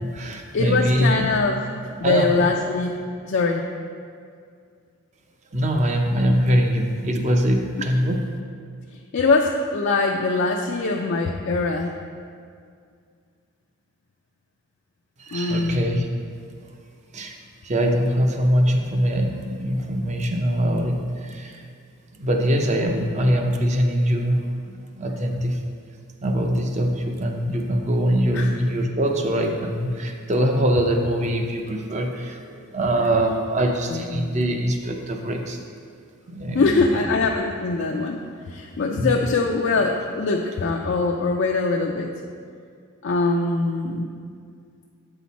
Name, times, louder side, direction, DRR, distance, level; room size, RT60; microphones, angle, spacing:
voice 1, 0.0-1.3 2.0-2.5 5.5-8.3 15.2-16.1 17.1-17.4 17.6-21.6 22.2-24.5 25.0-25.6 26.2-35.6 36.3-37.1 38.9-39.2, equal, 35° right, 3 dB, 0.6 m, -23 dB
voice 2, 0.5-1.6 2.0-3.0 3.3-3.6 9.1-11.9 15.3-15.9 28.3-28.5 33.0-33.1 33.9-34.2 36.5-42.1 43.0-44.1, left 3 dB, 55° left, 1 dB, 0.4 m, -22 dB
8.2 x 5.8 x 4.1 m, 2.2 s
head